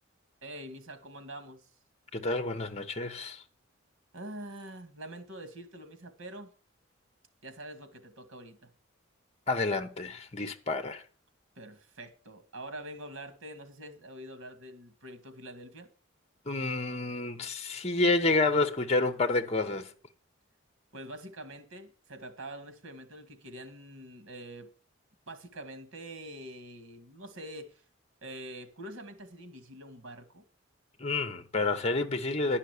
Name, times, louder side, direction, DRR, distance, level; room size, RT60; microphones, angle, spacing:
voice 1, 0.4-1.7 4.1-6.5 7.4-8.7 11.6-15.9 20.9-24.7 25.3-27.8 28.2-30.4, right 1 dB, 90° right, 2.1 m, -45 dB
voice 2, 2.1-3.4 9.5-11.0 16.5-19.9 31.0-32.6, left 3 dB, 30° left, 0.9 m, -29 dB
11.0 x 5.7 x 8.2 m
head